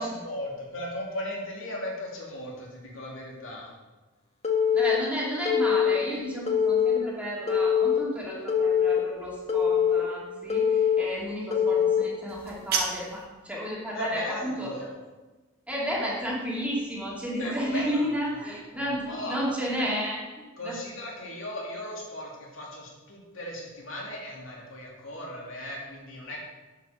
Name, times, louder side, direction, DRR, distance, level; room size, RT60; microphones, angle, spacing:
voice 1, 0.0-3.7 13.9-15.0 17.4-18.1 18.7-18.8 19.1-19.4 19.8-19.9 20.6-26.4, left 1 dB, 70° left, -2 dB, 2.6 m, -37 dB
Telephone, 4.4-5.0 5.4-6.0 6.5-7.0 7.5-8.0 8.5-9.0 9.5-10.0 10.5-11.0 11.5-12.0, left 7 dB, 30° left, 1.4 m, -23 dB
voice 2, 4.7-14.7 15.7-20.2 20.6-20.8, equal, 5° right, -6 dB, 2.6 m, -32 dB
sound 1, 12.3-13.3, right 5 dB, 50° right, 1.5 m, -31 dB
9.5 x 6.0 x 7.1 m, 1.2 s
head